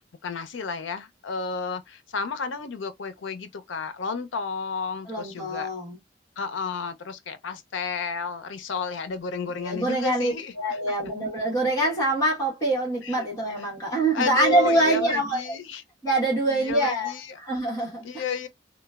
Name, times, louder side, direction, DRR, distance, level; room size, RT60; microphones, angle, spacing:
voice 1, 0.2-5.7 6.4-10.8 13.0-13.3 13.6-13.7 14.1-15.8 16.5-17.4 18.0-18.5, left 5 dB, 80° left, 0.5 m, -32 dB
voice 2, 5.1-6.0 9.6-15.6 16.0-17.1 17.4-18.0, right 1 dB, 20° left, 1.3 m, -24 dB
3.1 x 2.1 x 2.3 m
head